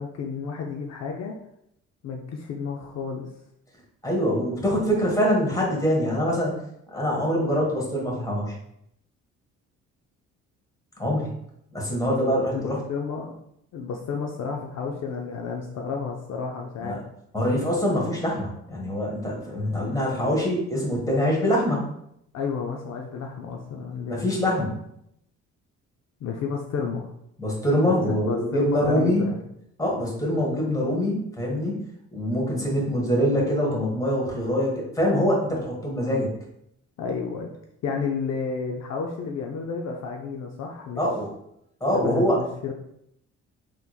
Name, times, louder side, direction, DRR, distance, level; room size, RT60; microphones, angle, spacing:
voice 1, 0.0-1.3 2.0-3.3 12.5-13.4 13.7-17.0 22.3-24.3 26.2-27.1 27.8-29.4 37.0-37.5 37.8-41.0 41.9-42.7, left 5 dB, 60° left, 1 dB, 0.5 m, -31 dB
voice 2, 4.0-6.5 6.9-8.5 11.0-11.3 11.7-12.8 16.8-16.9 17.3-21.8 24.1-24.7 27.4-29.2 29.8-31.8 32.1-36.3 41.0-41.3 41.8-42.4, equal, 10° left, -3 dB, 1.3 m, -24 dB
3.4 x 3.1 x 2.3 m, 0.75 s
cardioid pair, 90°, 30 cm